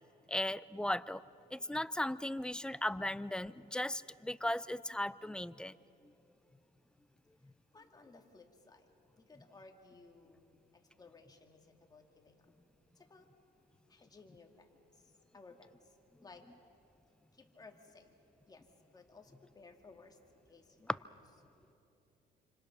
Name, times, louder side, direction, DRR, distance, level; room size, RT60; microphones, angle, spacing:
voice 1, 0.3-1.2 1.5-5.8, left 1 dB, 5° left, 16 dB, 0.4 m, -37 dB
voice 2, 7.7-8.9 9.2-12.5 12.9-13.3 13.9-16.5 17.3-18.1 18.4-18.7 18.9-20.2 20.5-21.0, left 3 dB, 25° left, 3 dB, 2.5 m, -59 dB
28.5 x 25.5 x 6.0 m, 2.8 s
cardioid pair, 110°, 17 cm